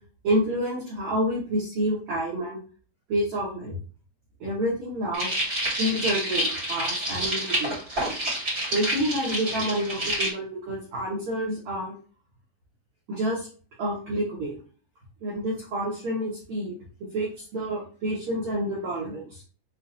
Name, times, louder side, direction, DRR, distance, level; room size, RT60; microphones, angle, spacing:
voice 1, 0.2-2.6 3.1-3.7 4.4-5.3 5.8-7.7 8.7-11.9 13.1-13.5 13.8-14.5 15.2-16.8 17.1-19.4, right 1 dB, 75° right, -5 dB, 1.6 m, -28 dB
sound 1, 5.1-10.3, right 1 dB, 45° right, 1.1 m, -28 dB
7.2 x 2.6 x 2.7 m, 0.39 s
omnidirectional pair, 5.4 m